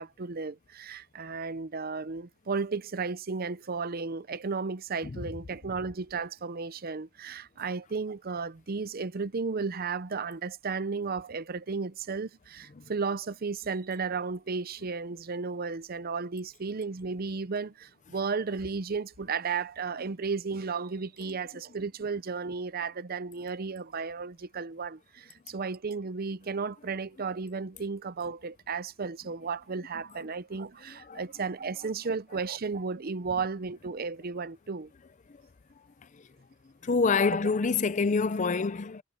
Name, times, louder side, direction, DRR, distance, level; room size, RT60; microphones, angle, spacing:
voice 1, 0.0-34.9, right 4 dB, 45° right, 0.6 m, -34 dB
voice 2, 36.8-39.0, left 4 dB, 35° left, 0.5 m, -26 dB
head